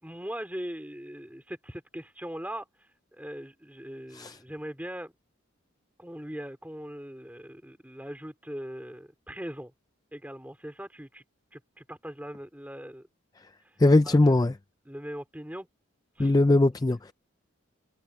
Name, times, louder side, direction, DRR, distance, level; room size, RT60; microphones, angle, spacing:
voice 1, 0.0-5.1 6.0-9.7 10.1-11.2 11.5-13.1 13.6-13.8 14.1-14.2 14.8-15.7 16.2-16.3, equal, 10° right, 4.2 m, -40 dB
voice 2, 13.8-14.5 16.2-17.1, left 2 dB, 20° left, 0.4 m, -21 dB
head